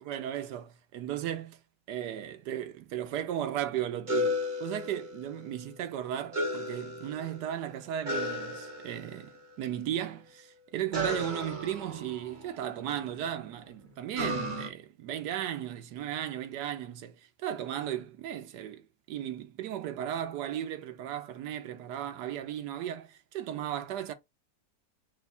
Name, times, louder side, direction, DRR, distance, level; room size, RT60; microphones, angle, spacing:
voice 1, 0.0-1.6 1.9-17.2 17.4-24.1, right 11 dB, 70° right, 1.2 m, -36 dB
sound 1, 4.1-5.5 6.3-7.5 8.0-9.3 10.9-13.0 14.1-14.7, left 1 dB, 35° right, 0.9 m, -34 dB
4.3 x 2.3 x 4.1 m
omnidirectional pair, 1.9 m